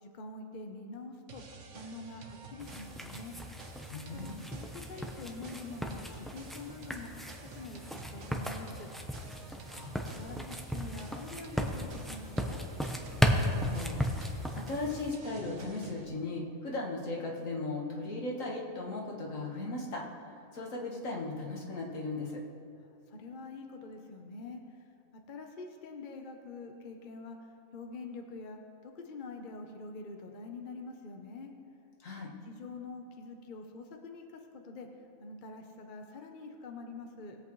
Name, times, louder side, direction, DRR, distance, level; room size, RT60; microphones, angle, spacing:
voice 1, 0.0-1.4 1.7-3.4 4.1-8.9 10.2-12.6 23.1-31.5 32.4-34.9 35.2-37.4, left 3 dB, 40° left, 3 dB, 0.9 m, -45 dB
sound 1, 1.3-16.1, right 3 dB, 60° right, 1.2 m, -50 dB
sound 2, 2.6-15.1, equal, ahead, 0.5 m, -36 dB
voice 2, 3.9-4.6 9.5-10.0 13.2-20.3 20.5-22.4 32.0-32.3, left 2 dB, 70° left, -1 dB, 1.9 m, -37 dB
19.5 x 8.2 x 3.2 m, 2.5 s
omnidirectional pair, 1.4 m